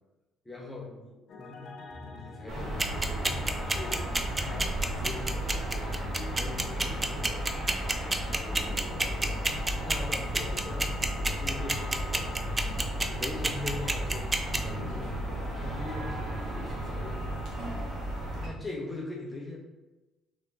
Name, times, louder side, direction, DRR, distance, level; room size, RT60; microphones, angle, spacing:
voice 1, 0.4-9.2 9.8-11.1 11.4-12.3 13.0-15.2 15.5-17.6 18.4-19.6, left 2 dB, 15° left, -2 dB, 0.6 m, -42 dB
sound 1, 1.3-17.4, left 3 dB, 55° left, 0.4 m, -46 dB
sound 2, 2.5-18.5, right 1 dB, 60° right, 1.1 m, -34 dB
sound 3, 2.8-14.6, right 2 dB, 20° right, 0.3 m, -27 dB
3.2 x 2.5 x 3.1 m, 1.1 s
cardioid pair, 105°, 0 cm